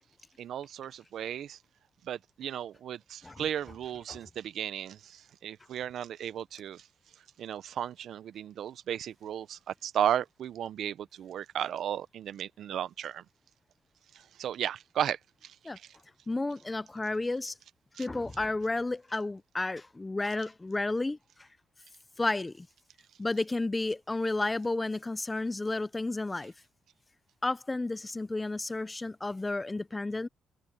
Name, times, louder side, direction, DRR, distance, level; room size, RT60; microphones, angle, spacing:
voice 1, 0.4-1.6 2.0-6.9 7.4-13.2 14.1-15.6 15.8-16.0 17.9-18.1, right 10 dB, 70° right, 0.7 m, -35 dB
voice 2, 16.3-17.5 18.0-21.5 22.2-22.7 23.2-26.5 27.4-30.3, left 2 dB, 20° left, 0.7 m, -32 dB
cardioid pair, 90°, 0 cm